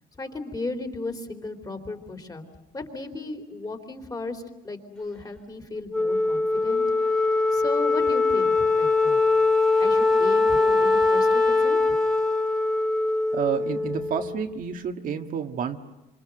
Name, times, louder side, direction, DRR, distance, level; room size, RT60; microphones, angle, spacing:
voice 1, 0.2-2.5 2.7-6.8 7.5-9.2 9.8-12.0, left 2 dB, 20° left, 5 dB, 3.7 m, -35 dB
Wind instrument woodwind instrument, 5.9-14.5, left 3 dB, 5° left, 2.1 m, -22 dB
voice 2, 13.3-15.8, right 7 dB, 55° right, 5 dB, 1.7 m, -29 dB
26.0 x 25.5 x 7.8 m, 1.0 s
cardioid pair, 110°, 17 cm